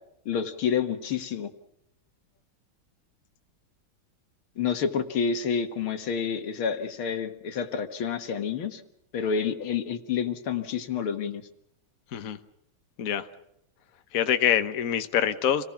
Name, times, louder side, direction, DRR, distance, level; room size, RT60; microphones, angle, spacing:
voice 1, 0.3-1.5 4.6-8.8 9.1-11.4, left 7 dB, 85° left, 7 dB, 2.4 m, -29 dB
voice 2, 14.1-15.6, left 9 dB, 50° left, 9 dB, 1.4 m, -25 dB
28.5 x 19.0 x 6.0 m, 0.78 s
omnidirectional pair, 2.2 m